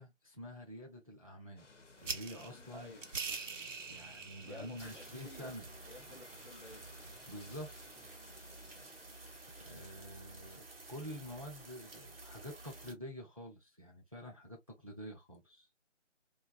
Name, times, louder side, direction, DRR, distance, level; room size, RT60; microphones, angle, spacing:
voice 1, 0.0-1.7 2.0-2.9 3.9-5.7 7.3-7.7 8.0-8.2 9.5-15.7, equal, 30° right, 0.5 m, -48 dB
sound 1, 1.6-9.9, left 4 dB, 70° left, 0.8 m, -60 dB
sound 2, 2.0-8.2, right 5 dB, 80° right, 0.7 m, -46 dB
voice 2, 2.7-3.1 4.4-5.6 5.9-6.9, left 1 dB, 45° left, 0.5 m, -53 dB
sound 3, 4.8-12.9, right 2 dB, 50° right, 0.9 m, -52 dB
2.9 x 2.3 x 2.3 m
figure-of-eight pair, 165°, 37 cm